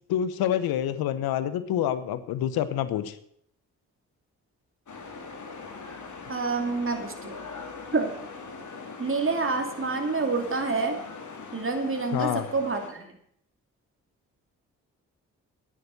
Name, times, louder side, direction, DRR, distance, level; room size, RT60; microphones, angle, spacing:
voice 1, 0.1-3.2 12.1-12.5, left 10 dB, 80° left, 13 dB, 0.9 m, -27 dB
sound 1, 4.9-12.9, left 4 dB, 55° left, 2.6 m, -41 dB
voice 2, 6.3-7.3 7.9-8.1 9.0-11.0 11.5-13.1, right 4 dB, 35° right, 3 dB, 2.6 m, -27 dB
9.8 x 8.7 x 7.8 m, 0.68 s
hypercardioid pair, 40°, 36 cm